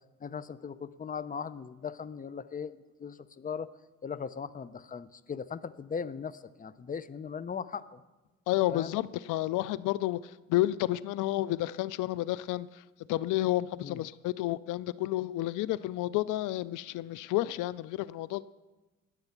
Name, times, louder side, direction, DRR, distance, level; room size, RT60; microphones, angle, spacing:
voice 1, 0.2-3.7 4.0-8.0 8.7-9.0 13.8-14.0, left 6 dB, 30° left, 16 dB, 0.7 m, -39 dB
voice 2, 8.5-10.2 10.5-12.7 13.1-18.4, left 16 dB, 90° left, 19 dB, 0.5 m, -30 dB
20.5 x 7.9 x 5.9 m, 1.1 s
cardioid pair, 90°, 30 cm